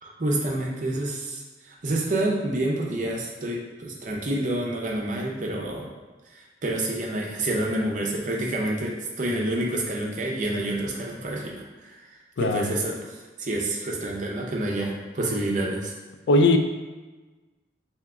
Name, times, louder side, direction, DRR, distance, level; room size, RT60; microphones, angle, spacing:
voice 1, 0.0-5.9 6.3-12.0 12.4-13.0 13.4-15.9, right 1 dB, 45° right, -1 dB, 0.6 m, -28 dB
voice 2, 12.4-12.7 16.3-16.6, left 2 dB, 70° left, 6 dB, 0.3 m, -19 dB
3.5 x 2.8 x 3.5 m, 1.2 s
head